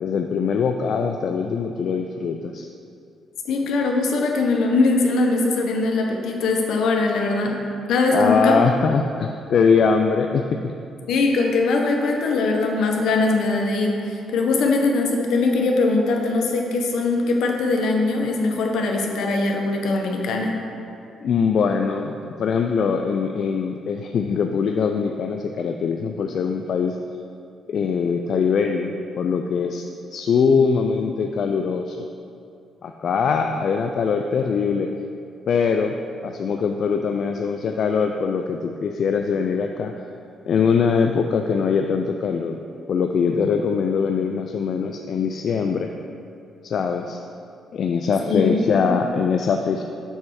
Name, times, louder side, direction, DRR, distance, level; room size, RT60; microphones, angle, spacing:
voice 1, 0.0-2.7 8.1-10.7 21.2-27.0 27.7-29.8 30.1-32.1 32.8-34.9 35.5-36.0 36.2-39.9 40.5-42.6 42.9-45.9 46.6-47.2 47.7-49.8, left 5 dB, 60° left, 4 dB, 0.3 m, -22 dB
voice 2, 3.4-8.6 11.1-20.6 48.3-48.9, left 3 dB, 75° left, 1 dB, 0.9 m, -21 dB
7.2 x 3.3 x 6.2 m, 2.6 s
cardioid pair, 90°, 0 cm